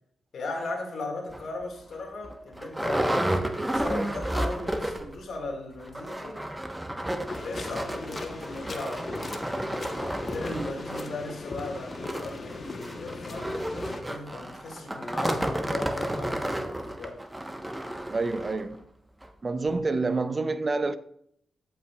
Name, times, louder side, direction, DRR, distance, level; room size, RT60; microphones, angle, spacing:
voice 1, 0.3-3.3 3.7-6.5 7.0-13.6 14.1-17.2, left 2 dB, 70° left, 1.9 m, -37 dB
sound 1, 1.3-1.4 1.9-2.0 2.2-5.2 5.5-5.6 5.8-18.6 19.2-19.3 19.7-19.8, right 1 dB, 10° right, 1.0 m, -32 dB
sound 2, 7.3-14.0, left 3 dB, 45° left, 1.0 m, -39 dB
voice 2, 18.1-18.8 19.4-21.0, right 3 dB, 35° right, 0.5 m, -28 dB
14.0 x 5.7 x 2.3 m
cardioid pair, 60°, 0 cm